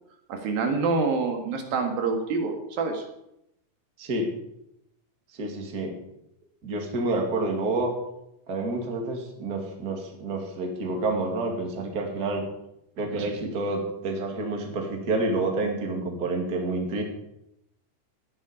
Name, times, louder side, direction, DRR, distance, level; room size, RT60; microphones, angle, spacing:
voice 1, 0.3-3.0, right 4 dB, 85° right, 3 dB, 3.6 m, -26 dB
voice 2, 4.0-4.3 5.4-5.9 6.6-7.9 8.5-12.4 13.0-17.0, right 2 dB, 30° right, 2 dB, 2.3 m, -28 dB
14.0 x 10.5 x 5.0 m, 0.81 s
omnidirectional pair, 4.0 m